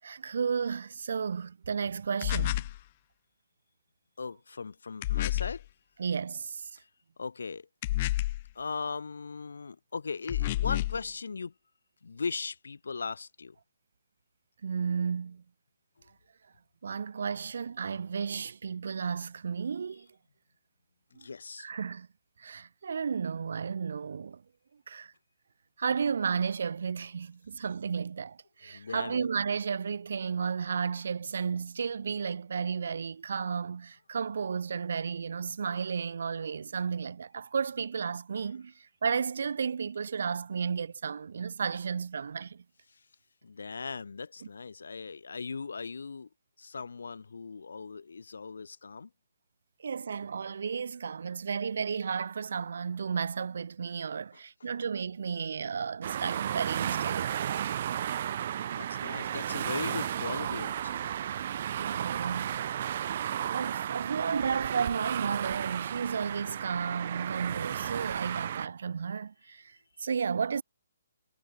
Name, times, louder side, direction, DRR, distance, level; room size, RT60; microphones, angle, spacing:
voice 1, 0.0-2.7 6.0-6.7 14.6-15.4 16.8-20.1 21.1-21.3 21.6-22.1 22.4-24.4 24.9-25.1 25.8-42.6 49.8-57.4 61.8-62.6 63.5-70.6, right 6 dB, 65° right, 7.9 m, -33 dB
sound 1, 2.2-2.8 5.0-5.6 7.8-8.5 10.3-11.0, left 16 dB, 30° left, 0.4 m, -29 dB
voice 2, 4.2-5.7 6.7-6.9 7.2-7.7 8.6-11.5 12.0-13.6 21.1-21.7 28.6-29.3 42.9-43.0 43.4-46.3 46.6-49.1 54.3-54.4 58.7-61.2 63.4-63.5, left 5 dB, 80° left, 3.7 m, -38 dB
sound 2, 56.0-68.7, right 10 dB, 40° right, 3.4 m, -33 dB
hypercardioid pair, 165°, 0 cm